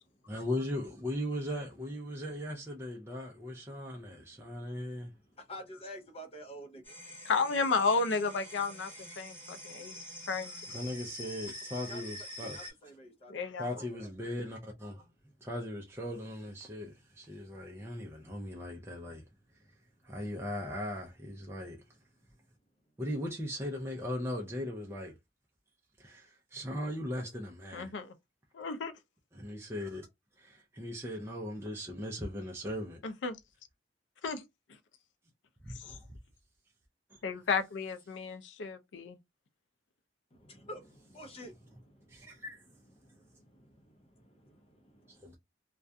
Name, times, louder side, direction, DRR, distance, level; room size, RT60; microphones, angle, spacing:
voice 1, 0.3-5.1 10.7-12.6 13.6-15.1 15.4-19.3 20.0-21.8 23.0-25.2 26.0-27.9 29.3-30.1 30.4-33.0 37.1-37.2 42.1-42.6, left 1 dB, 15° right, 0.4 m, -38 dB
voice 2, 5.4-6.9 11.8-12.0 12.4-13.3 40.3-42.4 43.0-45.1, equal, 35° left, 0.6 m, -49 dB
sound 1, 6.8-12.7, left 1 dB, 10° left, 1.2 m, -46 dB
voice 3, 7.3-8.9 9.2-9.9 10.3-10.5 13.3-13.7 27.7-28.1 28.5-28.9 33.0-33.4 34.2-34.4 37.2-39.2, left 4 dB, 85° left, 0.4 m, -32 dB
2.4 x 2.2 x 2.6 m
head